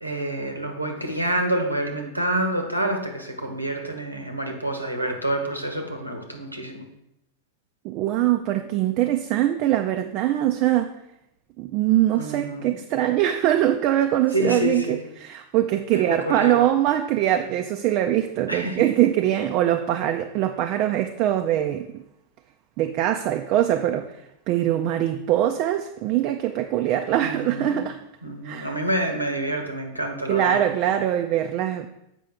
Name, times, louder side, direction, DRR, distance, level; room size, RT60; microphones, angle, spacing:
voice 1, 0.0-6.9 12.1-12.8 14.3-15.0 15.9-16.6 18.5-18.9 27.2-27.9 28.2-30.6, right 1 dB, 90° right, 4 dB, 0.9 m, -28 dB
voice 2, 7.8-10.9 11.6-22.0 22.8-28.0 28.4-28.7 30.3-31.9, right 12 dB, 40° right, 6 dB, 0.4 m, -23 dB
7.5 x 5.1 x 3.5 m, 0.84 s
figure-of-eight pair, 90°, 0 cm